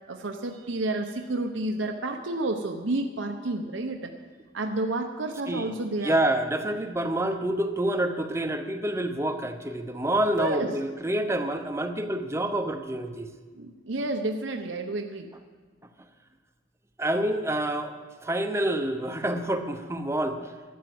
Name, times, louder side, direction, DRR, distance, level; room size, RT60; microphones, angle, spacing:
voice 1, 0.1-4.1 4.5-6.2 10.4-10.7 13.5-15.3, right 2 dB, 85° right, 4 dB, 0.9 m, -30 dB
voice 2, 6.0-13.3 17.0-17.9 18.2-20.5, right 1 dB, 15° right, 7 dB, 0.8 m, -27 dB
13.0 x 10.0 x 7.8 m, 1.4 s
head